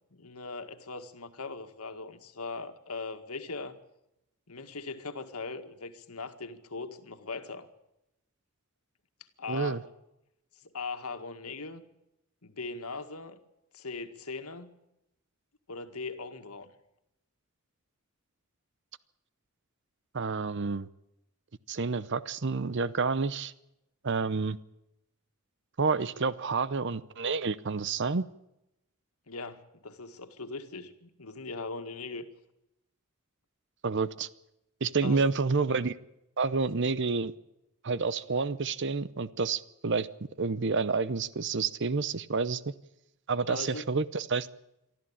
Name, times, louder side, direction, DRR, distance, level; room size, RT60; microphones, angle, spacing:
voice 1, 0.1-3.8 4.5-7.7 9.4-9.8 10.6-11.9 12.4-13.4 13.7-14.7 15.7-16.7 29.3-32.3 35.0-35.2 43.4-43.8, left 3 dB, 90° left, 8 dB, 1.9 m, -40 dB
voice 2, 9.5-9.8 20.1-20.9 21.7-23.5 24.0-24.6 25.8-28.2 33.8-34.3 34.8-35.9 36.4-37.3 37.8-40.1 40.4-42.6 43.3-44.5, right 4 dB, 55° right, 17 dB, 0.7 m, -29 dB
24.0 x 13.5 x 8.7 m, 0.86 s
head